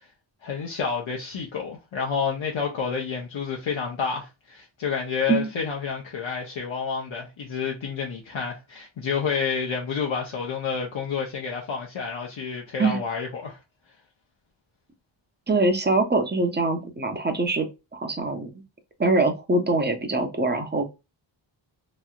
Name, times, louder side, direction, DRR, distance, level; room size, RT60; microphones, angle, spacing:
voice 1, 0.4-13.6, left 6 dB, 70° left, 0.8 m, -29 dB
voice 2, 15.5-17.7 17.9-18.5 19.0-20.8, right 3 dB, 20° right, 0.8 m, -23 dB
3.1 x 2.7 x 2.3 m
wide cardioid pair, 95°, 48 cm